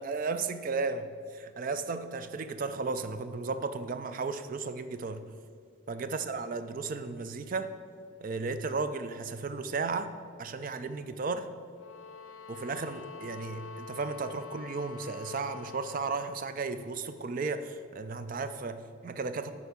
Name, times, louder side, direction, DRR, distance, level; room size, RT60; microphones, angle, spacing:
voice 1, 0.0-5.2 5.9-7.7 8.2-10.1 10.4-11.5 12.5-19.5, right 4 dB, 40° right, 11 dB, 0.3 m, -34 dB
sound 1, 11.7-16.5, left 6 dB, 80° left, 0.5 m, -46 dB
8.1 x 4.4 x 5.9 m, 2.1 s
head